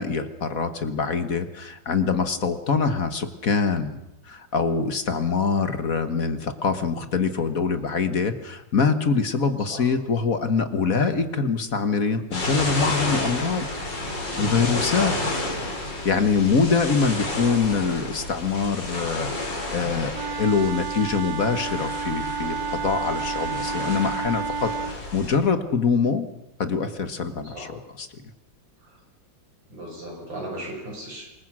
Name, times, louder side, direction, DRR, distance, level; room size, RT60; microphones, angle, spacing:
voice 1, 0.0-4.0 4.3-13.7 14.4-15.1 16.0-26.3 26.6-28.1, left 5 dB, 50° left, 10 dB, 1.8 m, -24 dB
voice 2, 9.6-9.9 14.9-15.3 27.4-27.8 28.8-29.0 29.7-31.2, right 1 dB, 85° right, 0 dB, 7.4 m, -37 dB
sound 1, 12.3-25.4, left 2 dB, 70° left, 5.5 m, -31 dB
Wind instrument woodwind instrument, 20.1-25.0, right 5 dB, 55° right, 1.5 m, -30 dB
27.0 x 21.5 x 6.3 m, 0.91 s
omnidirectional pair, 2.0 m